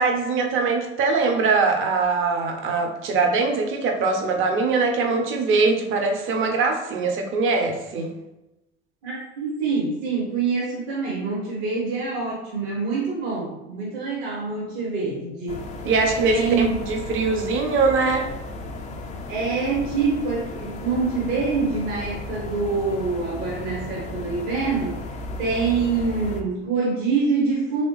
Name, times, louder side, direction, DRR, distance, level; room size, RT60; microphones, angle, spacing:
voice 1, 0.0-8.1 15.8-18.3, right 4 dB, 35° right, 3 dB, 0.7 m, -22 dB
voice 2, 9.0-15.6 16.2-16.8 19.3-25.0 25.4-27.9, right 4 dB, 55° right, -4 dB, 1.2 m, -25 dB
sound 1, 15.5-26.4, left 2 dB, 20° left, 0.4 m, -35 dB
3.4 x 3.0 x 3.1 m, 0.95 s
figure-of-eight pair, 65°, 36 cm